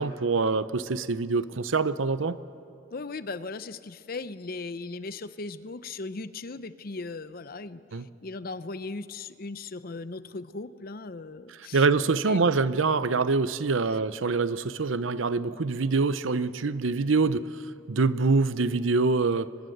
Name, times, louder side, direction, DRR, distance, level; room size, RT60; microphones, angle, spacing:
voice 1, 0.0-2.4 7.9-8.0 11.7-17.6 17.9-19.6, right 4 dB, 90° right, 15 dB, 0.7 m, -25 dB
voice 2, 2.9-11.9 12.3-12.4, left 3 dB, 50° left, 14 dB, 0.7 m, -38 dB
24.5 x 20.5 x 7.9 m, 2.6 s
head